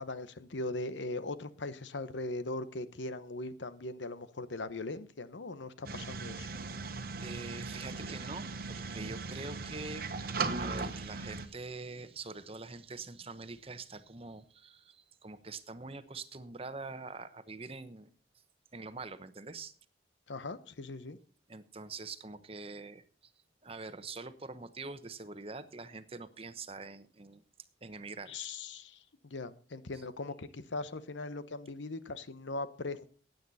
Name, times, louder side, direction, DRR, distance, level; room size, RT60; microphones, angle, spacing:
voice 1, 0.0-6.5 20.3-21.2 28.3-33.1, left 2 dB, 90° left, 13 dB, 1.0 m, -40 dB
sound 1, 5.8-11.5, right 3 dB, 55° right, 1.2 m, -38 dB
voice 2, 7.2-18.1 18.7-19.7 21.5-23.3 23.6-27.4 27.8-28.3, right 3 dB, 30° right, 11 dB, 0.9 m, -44 dB
15.5 x 9.3 x 4.2 m, 0.40 s
head